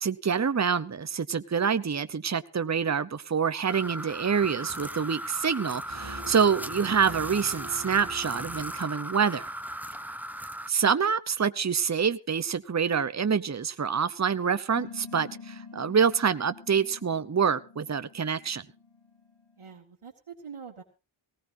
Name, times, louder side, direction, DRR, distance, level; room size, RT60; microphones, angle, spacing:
voice 1, 0.0-9.5 10.7-18.6, right 6 dB, 35° right, 13 dB, 0.8 m, -26 dB
sound 1, 3.7-10.7, right 1 dB, 5° right, 0.7 m, -37 dB
sound 2, 5.9-9.5, right 1 dB, 50° right, 2.4 m, -44 dB
sound 3, 14.7-19.7, left 5 dB, 60° left, 5.9 m, -47 dB
voice 2, 19.6-20.8, right 6 dB, 80° right, -1 dB, 1.9 m, -44 dB
18.5 x 18.0 x 2.7 m, 0.29 s
wide cardioid pair, 65°, 50 cm